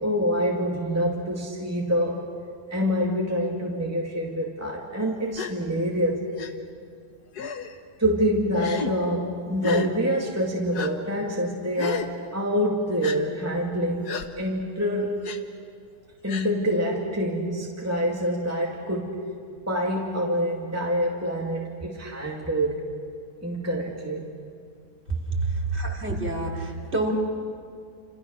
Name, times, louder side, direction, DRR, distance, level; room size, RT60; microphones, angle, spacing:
voice 1, 0.0-2.2 2.7-6.2 8.0-15.3 16.2-19.2 19.7-22.9 23.4-24.3, equal, 10° right, -2 dB, 2.1 m, -26 dB
Gasp, 5.3-5.5 6.4-6.5 7.3-7.7 8.6-8.9 9.6-9.9 10.7-10.9 11.8-12.1 13.0-13.2 14.1-14.3 15.2-15.4 16.3-16.5, left 6 dB, 55° left, 1.7 m, -32 dB
voice 2, 25.3-27.2, right 2 dB, 30° right, -1 dB, 3.5 m, -27 dB
30.0 x 27.5 x 6.3 m, 2.2 s
omnidirectional pair, 2.1 m